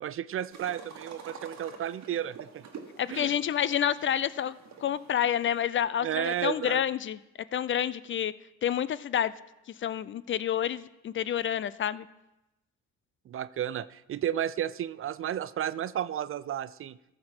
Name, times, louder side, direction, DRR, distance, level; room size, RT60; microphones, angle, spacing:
voice 1, 0.0-2.6 3.1-3.3 6.0-6.8 13.3-17.0, right 10 dB, 45° right, 16 dB, 0.4 m, -32 dB
sound 1, 0.5-5.6, right 6 dB, 65° right, 1.4 m, -47 dB
voice 2, 3.0-4.6 4.8-7.2 7.5-8.3 8.6-9.3 9.8-12.1, left 9 dB, 40° left, 17 dB, 0.4 m, -28 dB
14.5 x 6.6 x 4.4 m, 0.94 s
cardioid pair, 90°, 30 cm